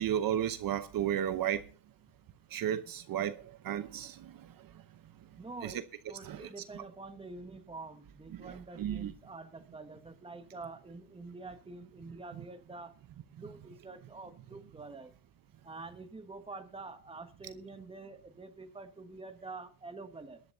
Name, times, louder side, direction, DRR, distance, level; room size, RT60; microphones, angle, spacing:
voice 1, 0.0-1.7 2.5-4.5 5.6-5.8 6.2-6.5 6.7-6.8 8.3-9.1, right 10 dB, 60° right, 0.9 m, -34 dB
voice 2, 5.4-12.9 13.3-15.1 15.6-20.4, right 3 dB, 15° right, 1.6 m, -47 dB
22.0 x 11.0 x 2.7 m
cardioid pair, 125°, 40 cm